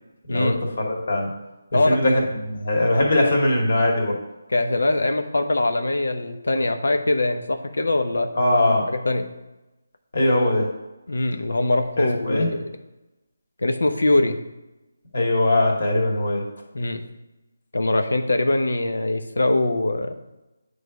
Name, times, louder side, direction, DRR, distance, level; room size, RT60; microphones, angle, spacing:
voice 1, 0.3-0.6 1.7-2.2 4.5-8.3 8.9-9.3 11.1-12.8 13.6-14.4 16.7-17.0 17.7-20.1, left 2 dB, 80° left, 6 dB, 0.8 m, -22 dB
voice 2, 0.8-1.3 1.9-2.1 2.4-4.1 8.3-8.8 10.1-10.7 12.0-12.5 15.1-16.4, left 1 dB, 60° left, -1 dB, 2.2 m, -20 dB
9.2 x 3.4 x 5.1 m, 1.0 s
figure-of-eight pair, 160°, 0 cm